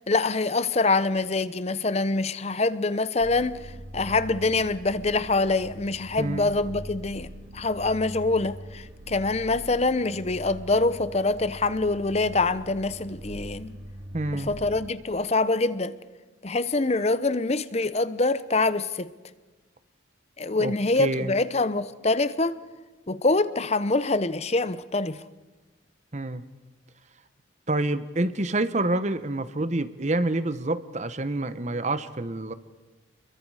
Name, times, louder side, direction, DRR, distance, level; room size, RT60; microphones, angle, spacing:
voice 1, 0.1-3.6 3.9-7.3 7.5-13.7 14.3-15.9 16.4-19.1 20.4-22.5 23.1-25.2, left 3 dB, 35° left, 0.7 m, -25 dB
sound 1, 3.2-14.9, equal, 80° right, 2.0 m, -42 dB
voice 2, 6.2-6.5 14.1-14.5 20.6-21.3 26.1-26.4 27.7-32.5, right 2 dB, 35° right, 0.9 m, -27 dB
30.0 x 22.5 x 4.9 m
head